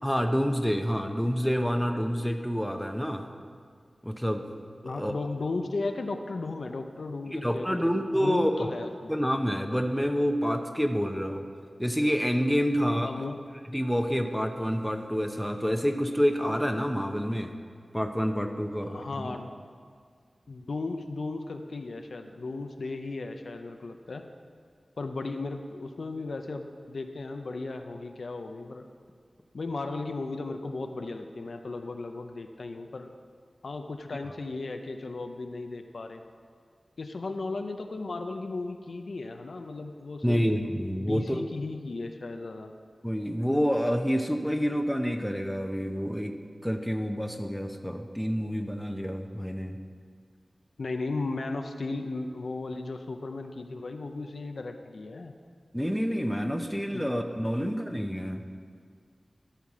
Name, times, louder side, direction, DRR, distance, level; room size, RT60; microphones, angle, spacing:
voice 1, 0.0-3.3 4.0-4.4 4.8-5.1 7.3-8.7 9.1-11.4 11.8-13.3 13.7-17.5 17.9-19.3 40.2-41.4 43.0-46.3 46.6-49.8 55.7-58.4, equal, ahead, 5 dB, 0.8 m, -28 dB
voice 2, 4.8-9.1 13.0-13.4 18.8-19.6 20.5-24.2 25.0-28.8 29.5-33.1 33.6-36.2 37.0-40.5 41.0-42.7 50.8-55.3 56.9-57.1 57.6-57.7, left 3 dB, 80° left, 6 dB, 0.6 m, -35 dB
13.5 x 5.9 x 4.9 m, 2.1 s
wide cardioid pair, 60°, 0 cm